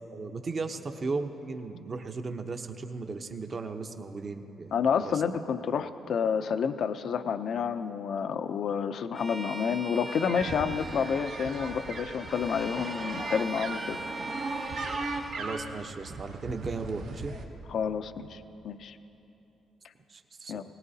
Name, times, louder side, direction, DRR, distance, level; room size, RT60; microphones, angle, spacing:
voice 1, 0.1-5.1 15.4-17.3 20.1-20.5, right 3 dB, 40° right, 6 dB, 0.8 m, -36 dB
voice 2, 4.7-14.0 17.7-19.0 20.5-20.6, left 7 dB, 65° left, 9 dB, 0.5 m, -29 dB
Bowed string instrument, 9.1-15.4, right 1 dB, 10° right, 0.5 m, -41 dB
sound 1, 10.1-17.4, right 3 dB, 85° right, 1.4 m, -38 dB
20.5 x 18.0 x 2.8 m, 3.0 s
cardioid pair, 90°, 0 cm